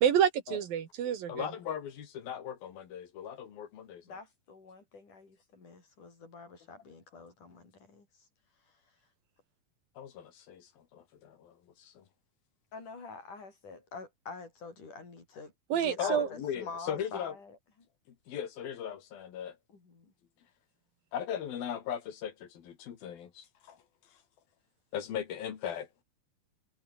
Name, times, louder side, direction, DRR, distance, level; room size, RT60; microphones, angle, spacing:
voice 1, 0.0-1.5 15.7-16.3, right 9 dB, 75° right, 4.1 m, -28 dB
voice 2, 1.3-4.2 10.0-12.0 16.0-17.4 18.3-19.6 21.1-23.8 24.9-25.9, left 9 dB, 85° left, 4.3 m, -38 dB
voice 3, 4.0-8.1 12.7-17.6 19.7-20.1, left 4 dB, 60° left, 7.8 m, -46 dB
omnidirectional pair, 4.1 m